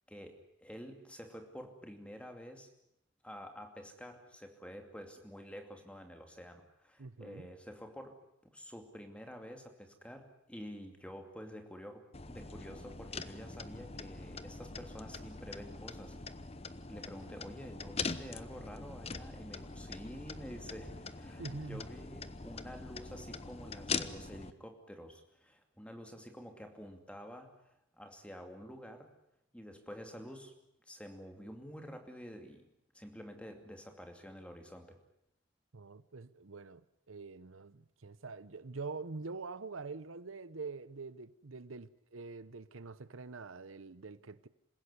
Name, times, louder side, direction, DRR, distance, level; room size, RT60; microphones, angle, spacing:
voice 1, 0.1-2.7 3.2-16.1 16.9-29.1 29.5-30.5 30.9-32.7 32.9-35.0, equal, 5° left, 2.6 m, -49 dB
voice 2, 7.0-7.5 21.4-21.8 35.7-44.5, right 4 dB, 85° right, 0.9 m, -45 dB
sound 1, 12.1-24.5, left 4 dB, 30° left, 0.9 m, -43 dB
27.0 x 16.5 x 9.8 m
head